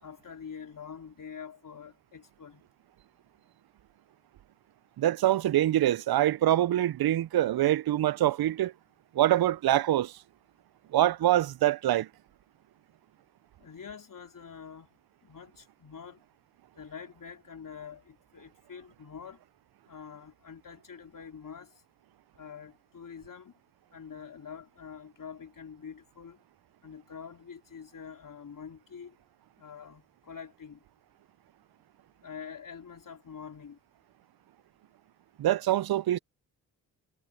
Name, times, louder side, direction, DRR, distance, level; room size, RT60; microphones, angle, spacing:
voice 1, 0.0-2.6 13.6-16.2 16.8-19.4 19.9-21.8 22.3-23.5 23.9-26.4 26.8-29.2 29.6-30.8 32.2-33.8, left 7 dB, 50° left, 4.3 m, -46 dB
voice 2, 5.0-8.7 9.1-10.1 10.9-12.1 35.4-36.2, right 13 dB, 60° right, 0.9 m, -24 dB
hypercardioid pair, 40°, 42 cm